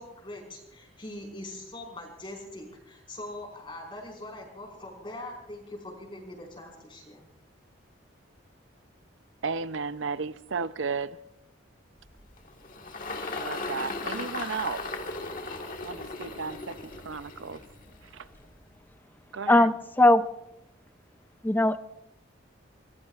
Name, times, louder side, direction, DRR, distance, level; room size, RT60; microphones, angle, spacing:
voice 1, 0.0-7.3, left 1 dB, 25° left, 1 dB, 5.0 m, -42 dB
voice 2, 9.4-11.2 13.3-14.8 15.8-17.6 18.1-18.3 19.3-19.7, right 5 dB, 75° right, 14 dB, 0.6 m, -34 dB
Engine, 12.0-18.6, left 3 dB, 45° left, 1.6 m, -37 dB
voice 3, 19.5-20.2 21.4-21.8, left 1 dB, 10° left, 12 dB, 0.5 m, -20 dB
25.5 x 21.5 x 2.5 m, 0.83 s
head